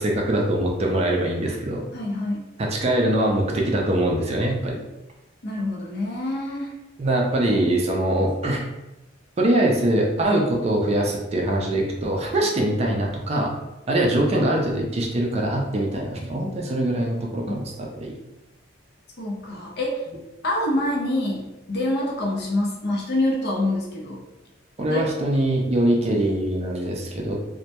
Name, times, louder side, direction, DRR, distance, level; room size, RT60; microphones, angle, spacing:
voice 1, 0.0-1.9 2.6-4.8 7.0-8.6 9.4-13.5 13.9-18.1 24.8-27.4, right 1 dB, 35° right, -1 dB, 0.4 m, -23 dB
voice 2, 1.9-2.4 5.4-6.7 10.3-10.4 19.2-20.1 20.4-24.2 24.9-25.1, left 1 dB, 55° left, -1 dB, 0.5 m, -26 dB
2.1 x 2.0 x 2.8 m, 0.98 s
head